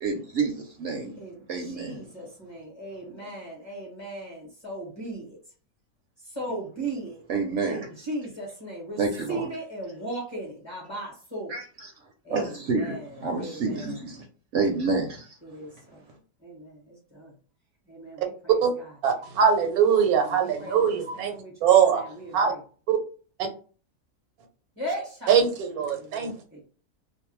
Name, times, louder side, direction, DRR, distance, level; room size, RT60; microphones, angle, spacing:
voice 1, 0.0-1.2 1.5-2.0 7.3-7.9 9.0-9.5 11.5-11.9 12.3-14.2 14.5-15.3, right 4 dB, 65° right, 0.8 m, -28 dB
voice 2, 1.2-5.4 6.2-7.2 7.6-9.0 9.3-11.5 12.2-14.0 15.4-16.0 16.4-17.3 17.9-18.9 19.8-22.6 24.8-25.3 25.9-26.6, right 1 dB, 20° left, 0.8 m, -38 dB
voice 3, 19.0-21.3 21.6-22.1 22.3-22.5 22.9-23.0 25.3-26.3, right 7 dB, 80° right, 1.1 m, -21 dB
2.6 x 2.0 x 3.0 m
omnidirectional pair, 1.5 m